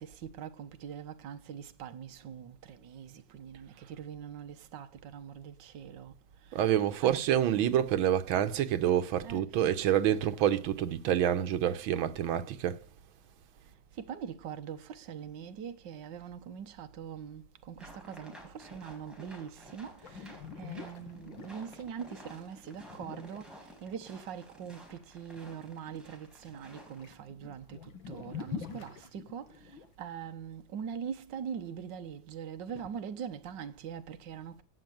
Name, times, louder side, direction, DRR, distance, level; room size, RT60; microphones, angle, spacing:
voice 1, 0.0-6.1 6.5-6.7 7.0-7.2 9.2-9.7 14.0-29.5 30.0-34.6, right 8 dB, 65° right, 1.7 m, -43 dB
voice 2, 6.5-12.8, right 10 dB, 90° right, 1.7 m, -27 dB
sound 1, 17.8-27.0, equal, ahead, 4.7 m, -53 dB
sound 2, 20.0-23.9 26.5-26.7 26.9-29.9 32.7-32.9, left 6 dB, 80° left, 2.3 m, -45 dB
16.0 x 6.4 x 9.2 m
omnidirectional pair, 2.1 m